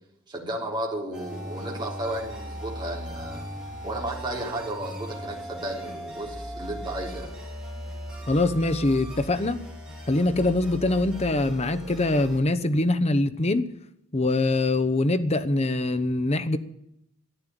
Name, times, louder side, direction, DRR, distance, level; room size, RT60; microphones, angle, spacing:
voice 1, 0.3-3.4 3.8-7.3, right 1 dB, 20° right, 3.7 m, -33 dB
sound 1, 1.1-12.4, equal, 5° right, 5.9 m, -38 dB
voice 2, 8.3-9.6 10.1-13.7 14.1-16.6, left 2 dB, 30° left, 0.9 m, -23 dB
13.5 x 9.6 x 9.1 m
head